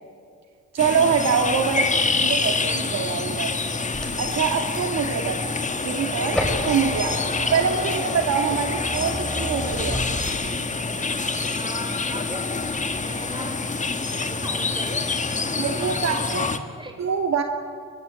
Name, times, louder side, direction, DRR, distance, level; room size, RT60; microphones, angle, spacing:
voice 1, 0.7-3.5 4.2-10.0 15.6-16.4 17.0-17.4, right 6 dB, 60° right, 4 dB, 2.2 m, -25 dB
sound 1, 0.8-16.6, left 3 dB, 25° left, 1.7 m, -26 dB
sound 2, 3.9-10.7 11.2-12.2 12.5-13.0, equal, 5° left, 6.3 m, -33 dB
voice 2, 11.6-12.5 12.9-13.7 14.1-17.0, right 2 dB, 15° right, 4 dB, 5.3 m, -40 dB
23.5 x 22.0 x 8.3 m, 2.2 s
cardioid pair, 90°, 30 cm